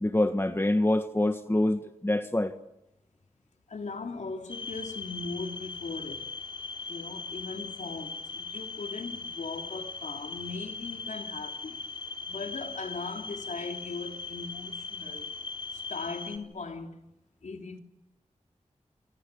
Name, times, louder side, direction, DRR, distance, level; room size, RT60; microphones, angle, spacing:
voice 1, 0.0-2.5, left 1 dB, 20° left, 1.5 m, -26 dB
voice 2, 3.7-6.3 6.9-11.9 12.3-15.3 15.7-17.0 17.4-17.8, left 4 dB, 75° left, 3.3 m, -39 dB
sound 1, 4.5-16.4, left 4 dB, 40° left, 4.1 m, -39 dB
27.5 x 26.5 x 6.9 m
cardioid pair, 55°, 13 cm